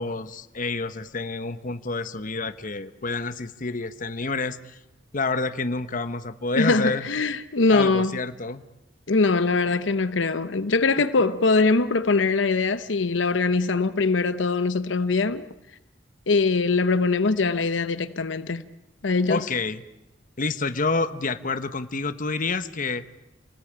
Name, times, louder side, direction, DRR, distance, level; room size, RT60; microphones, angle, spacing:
voice 1, 0.0-4.8 5.1-7.1 7.7-8.6 19.3-19.8 20.4-23.0, left 3 dB, 45° left, 1.1 m, -28 dB
voice 2, 6.6-8.2 9.1-15.4 16.3-18.6 19.0-19.4, left 3 dB, 80° left, 0.9 m, -22 dB
28.5 x 19.0 x 8.8 m
head